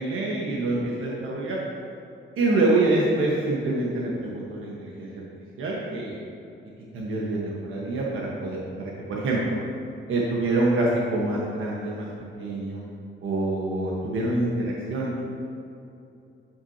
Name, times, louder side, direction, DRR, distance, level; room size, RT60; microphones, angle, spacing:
voice 1, 0.0-1.6 2.4-5.2 5.6-6.1 6.9-9.5 10.1-12.1 12.4-12.8 13.2-15.2, right 2 dB, 80° right, -4 dB, 1.2 m, -26 dB
12.0 x 6.0 x 2.8 m, 2.7 s
wide cardioid pair, 160°, 21 cm